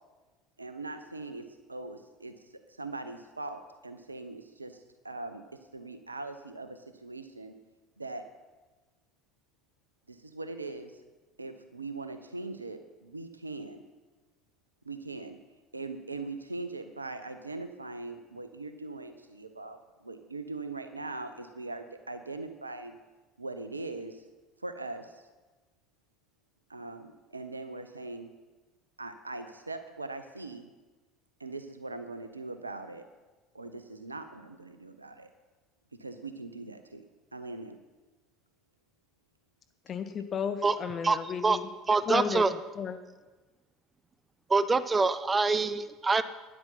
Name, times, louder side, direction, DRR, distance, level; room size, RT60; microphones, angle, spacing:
voice 1, 0.6-7.6 8.0-8.3 10.1-11.0 11.4-13.8 14.8-15.4 15.7-23.0 23.4-24.2 24.6-25.2 26.7-28.3 29.0-30.7 31.4-33.1 33.5-35.3 36.0-37.0 37.3-37.8, right 3 dB, 90° right, 10 dB, 0.7 m, -41 dB
voice 2, 39.9-41.7 42.1-43.0, left 6 dB, 40° left, 9 dB, 0.8 m, -34 dB
voice 3, 41.9-42.5 44.5-46.2, right 4 dB, 20° right, 14 dB, 0.6 m, -25 dB
12.5 x 10.0 x 5.6 m, 1.2 s
figure-of-eight pair, 65°, 0 cm